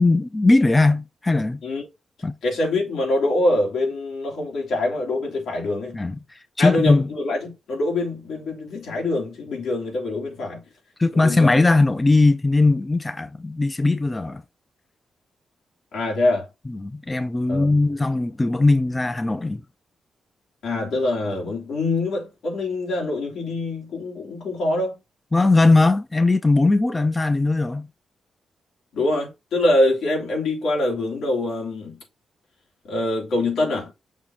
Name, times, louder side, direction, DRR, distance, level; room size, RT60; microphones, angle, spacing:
voice 1, 0.0-1.6 2.2-2.4 5.9-6.2 6.6-7.1 11.0-14.4 16.7-19.6 25.3-27.9, left 2 dB, 15° left, 0.4 m, -19 dB
voice 2, 2.4-6.0 6.6-10.6 11.1-11.6 15.9-16.5 17.5-17.7 20.6-25.0 28.9-32.0 32.8-33.9, left 2 dB, 85° left, 3.0 m, -24 dB
6.3 x 3.0 x 5.7 m
wide cardioid pair, 180°, 0 cm